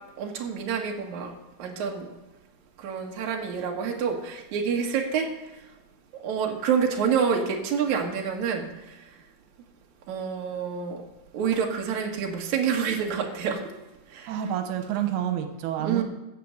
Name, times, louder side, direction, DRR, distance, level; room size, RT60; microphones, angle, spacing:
voice 1, 0.2-1.3 1.6-2.1 2.8-5.3 6.1-9.0 10.1-11.0 11.3-13.6 14.1-14.4 15.8-16.0, right 6 dB, 55° right, 1 dB, 2.8 m, -27 dB
voice 2, 14.3-16.0, right 10 dB, 85° right, 6 dB, 3.0 m, -28 dB
14.5 x 7.1 x 8.0 m, 1.1 s
omnidirectional pair, 4.4 m